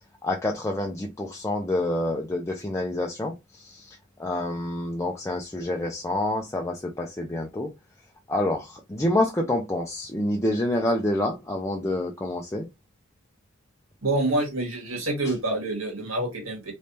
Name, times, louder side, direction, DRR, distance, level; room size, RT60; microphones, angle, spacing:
voice 1, 0.2-7.7 8.3-12.7, left 1 dB, 15° left, 0.5 m, -27 dB
voice 2, 14.0-16.7, right 2 dB, 75° right, 1.9 m, -27 dB
3.5 x 3.1 x 2.8 m
head